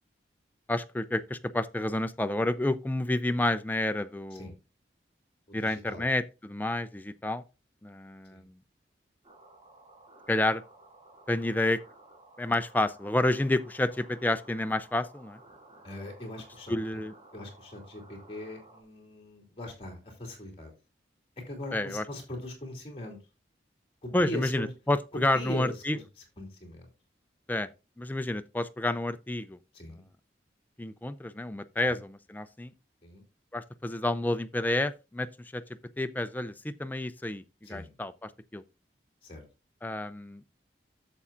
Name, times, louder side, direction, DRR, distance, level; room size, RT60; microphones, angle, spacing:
voice 1, 0.7-4.5 5.5-7.4 7.8-8.5 10.3-10.6 11.3-11.8 12.4-15.4 16.7-17.1 21.7-22.0 24.1-26.0 27.5-27.7 28.0-29.6 30.8-32.7 33.5-35.3 35.5-35.6 36.0-37.4 37.7-38.6 39.8-40.4, left 1 dB, 10° left, 0.3 m, -29 dB
voice 2, 5.5-6.1 8.3-8.4 15.8-16.7 17.3-20.7 21.5-23.2 24.0-24.7 25.1-26.0 26.4-26.9 29.7-30.0 31.9-32.0 33.0-33.2 37.6-37.9 39.2-39.4, left 1 dB, 30° left, 2.8 m, -40 dB
sound 1, 9.2-18.8, right 2 dB, 30° right, 2.4 m, -55 dB
11.0 x 7.1 x 2.5 m
head